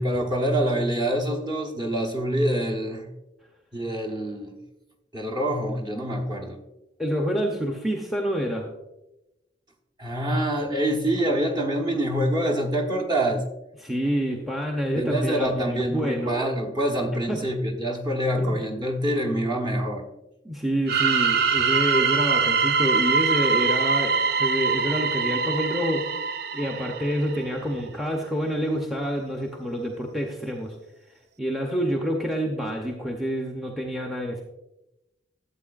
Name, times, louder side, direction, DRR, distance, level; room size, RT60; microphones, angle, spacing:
voice 1, 0.0-3.1 3.7-4.6 5.1-6.6 10.0-13.4 14.9-20.1, right 1 dB, 25° right, 0 dB, 1.1 m, -26 dB
voice 2, 7.0-8.7 13.8-16.4 17.3-17.4 18.4-18.6 20.4-26.1 26.5-30.8 31.4-34.4, equal, ahead, 1 dB, 0.7 m, -27 dB
sound 1, 20.9-27.5, right 5 dB, 60° right, 0.4 m, -23 dB
12.5 x 7.9 x 2.5 m, 0.96 s
head